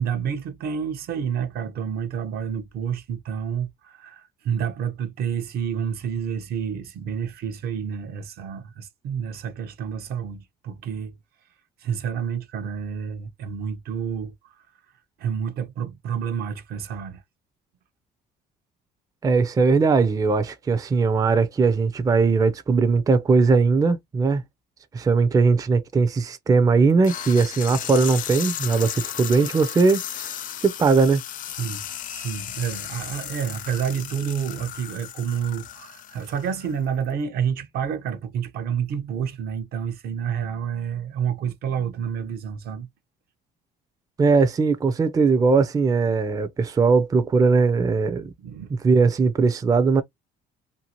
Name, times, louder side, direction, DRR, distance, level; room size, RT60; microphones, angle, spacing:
voice 1, 0.0-11.1 11.8-14.3 15.2-17.2 31.6-31.8 32.1-42.9 48.4-48.7, right 7 dB, 65° right, 0.7 m, -29 dB
voice 2, 19.2-24.4 24.9-30.3 30.6-31.2 44.2-48.3 48.7-50.0, right 4 dB, 20° right, 0.4 m, -19 dB
sound 1, 27.0-36.8, left 11 dB, 50° left, 0.4 m, -35 dB
2.6 x 2.4 x 2.8 m
cardioid pair, 110°, 17 cm